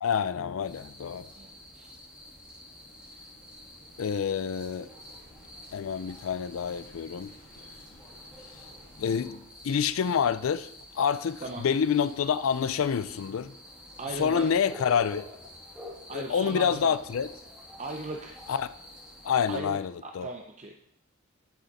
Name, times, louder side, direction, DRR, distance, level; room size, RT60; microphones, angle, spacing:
voice 1, 0.0-1.3 4.0-4.9 5.7-7.3 9.0-10.7 11.0-13.5 14.2-15.3 16.1-17.3 18.5-18.7 19.2-20.3, left 7 dB, 85° left, 14 dB, 0.4 m, -27 dB
sound 1, 0.6-19.6, left 1 dB, 5° right, 1.7 m, -49 dB
sound 2, 0.9-9.2, equal, 45° left, 2.9 m, -57 dB
voice 2, 1.3-1.9 11.4-11.7 14.0-14.5 16.1-16.9 17.8-18.4 19.5-20.8, right 2 dB, 35° right, 2 dB, 0.7 m, -38 dB
11.0 x 6.4 x 4.1 m, 0.75 s
head